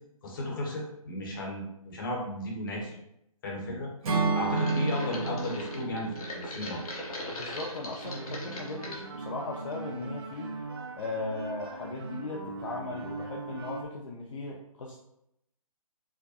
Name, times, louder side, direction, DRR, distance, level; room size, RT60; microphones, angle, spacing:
voice 1, 0.2-3.0 3.4-3.9 4.3-6.8, left 1 dB, 35° left, -2 dB, 1.0 m, -34 dB
Acoustic guitar / Strum, 4.0-8.1, right 4 dB, 70° right, 1.3 m, -32 dB
sound 1, 4.5-9.1 9.5-10.0 10.3-10.4, left 1 dB, 85° left, 1.1 m, -40 dB
voice 2, 7.4-10.6 11.0-15.0, left 3 dB, 60° left, -1 dB, 0.6 m, -37 dB
sound 2, 8.0-13.8, right 3 dB, 40° right, 0.4 m, -40 dB
4.6 x 2.2 x 2.8 m, 0.81 s
hypercardioid pair, 160°, 19 cm